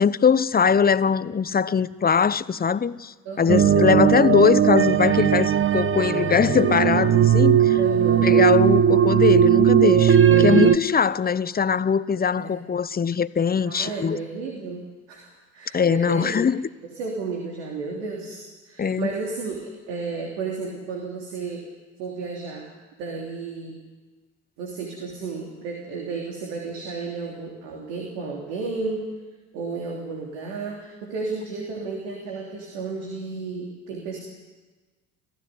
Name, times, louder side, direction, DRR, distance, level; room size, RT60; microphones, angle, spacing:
voice 1, 0.0-7.8 8.2-14.2 15.7-16.6 18.8-19.1, left 6 dB, 25° left, 0.9 m, -21 dB
voice 2, 3.2-3.8 7.7-8.3 12.4-12.6 13.6-16.4 16.9-19.6 19.9-21.7 22.0-22.7 23.0-23.8 24.6-29.1 29.5-34.2, right 4 dB, 75° right, 3.5 m, -33 dB
sound 1, 3.5-10.8, right 9 dB, 30° right, 1.3 m, -18 dB
26.0 x 15.5 x 9.7 m
hypercardioid pair, 55°, 37 cm